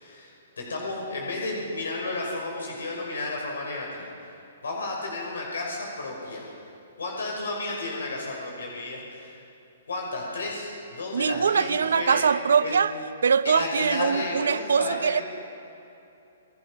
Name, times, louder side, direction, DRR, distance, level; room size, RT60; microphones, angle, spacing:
voice 1, 0.0-4.1 4.6-6.5 7.0-9.4 9.9-12.2 12.6-12.8 13.4-15.2, left 2 dB, 85° left, -1 dB, 5.8 m, -32 dB
voice 2, 11.1-12.9 13.2-15.2, right 6 dB, 75° right, 14 dB, 0.8 m, -22 dB
28.5 x 19.0 x 5.9 m, 2.8 s
hypercardioid pair, 135°, 0 cm